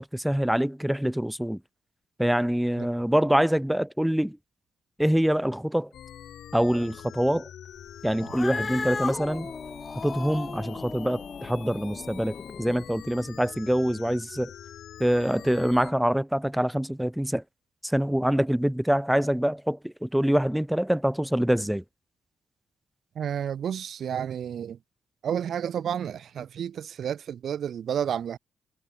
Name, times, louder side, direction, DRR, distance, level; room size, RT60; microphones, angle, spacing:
voice 1, 0.0-1.6 2.2-4.4 5.0-5.9 6.5-7.5 8.0-9.5 10.0-14.5 15.0-17.4 17.8-21.8, equal, 5° right, 0.5 m, -25 dB
sound 1, 5.9-15.9, left 10 dB, 85° left, 1.6 m, -45 dB
Cat, 8.2-12.8, left 4 dB, 35° left, 0.9 m, -36 dB
voice 2, 23.2-24.8 25.2-28.4, right 9 dB, 70° right, 0.5 m, -31 dB
cardioid pair, 90°, 0 cm